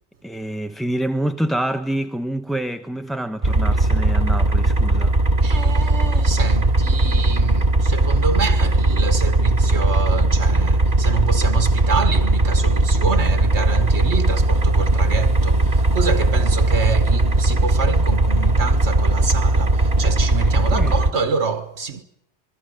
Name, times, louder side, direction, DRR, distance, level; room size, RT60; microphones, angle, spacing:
voice 1, 0.2-5.2 20.7-20.9, right 1 dB, ahead, 0.9 m, -26 dB
sound 1, 3.4-21.1, right 2 dB, 35° right, 2.5 m, -18 dB
voice 2, 5.4-22.0, right 5 dB, 80° right, 1.7 m, -26 dB
27.0 x 21.5 x 6.5 m
omnidirectional pair, 1.1 m